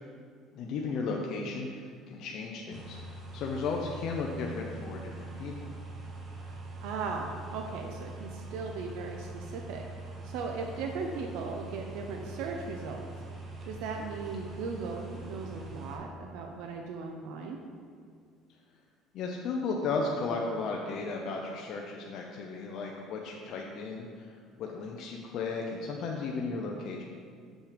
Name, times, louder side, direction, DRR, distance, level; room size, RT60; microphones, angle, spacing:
voice 1, 0.5-3.0 3.3-5.7 19.1-24.3 24.6-27.0, left 4 dB, 55° left, 0 dB, 0.7 m, -35 dB
sound 1, 2.7-16.0, right 3 dB, 30° right, 1.0 m, -43 dB
voice 2, 6.4-9.9 10.2-13.1 13.6-17.6, right 4 dB, 70° right, 3 dB, 0.7 m, -38 dB
6.6 x 6.1 x 5.1 m, 2.1 s
cardioid pair, 150°, 0 cm